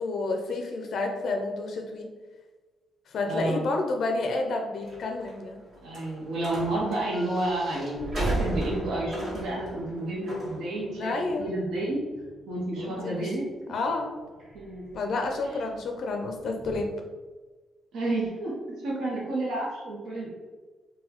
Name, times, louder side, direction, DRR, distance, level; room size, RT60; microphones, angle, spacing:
voice 1, 0.0-2.1 3.1-5.6 11.0-11.5 12.8-13.3 13.7-14.2 14.9-16.9, left 3 dB, 60° left, 3 dB, 0.4 m, -30 dB
voice 2, 3.3-3.7 5.8-8.1 8.4-12.0 12.5-13.4 14.5-15.0 15.4-15.5 17.9-20.3, right 2 dB, 75° right, -4 dB, 0.7 m, -30 dB
sound 1, 4.8-16.8, right 1 dB, 45° right, 1.5 m, -37 dB
3.9 x 2.2 x 2.9 m, 1.3 s
cardioid pair, 125°, 0 cm